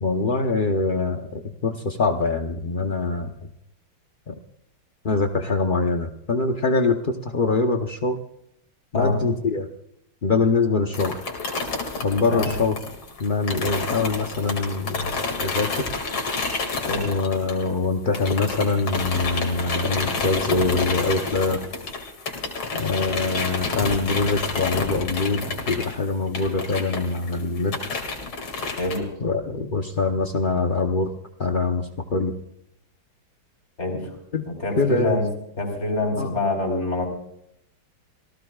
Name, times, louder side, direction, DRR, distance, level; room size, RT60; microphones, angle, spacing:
voice 1, 0.0-3.3 4.3-4.4 5.0-8.2 8.9-9.7 10.2-11.2 12.0-12.8 13.2-15.1 15.4-15.8 17.0-21.6 22.7-27.7 29.2-31.1 31.4-32.3 34.3-34.4 34.7-35.2 36.1-36.3, left 3 dB, 50° left, 4 dB, 0.6 m, -24 dB
sound 1, 10.9-17.9 18.1-29.0, left 4 dB, 80° left, 3.3 m, -29 dB
voice 2, 28.8-29.1 33.8-34.1 34.5-35.2 35.6-37.0, left 2 dB, 30° left, 2 dB, 4.7 m, -25 dB
27.0 x 17.0 x 2.4 m, 0.77 s
omnidirectional pair, 2.2 m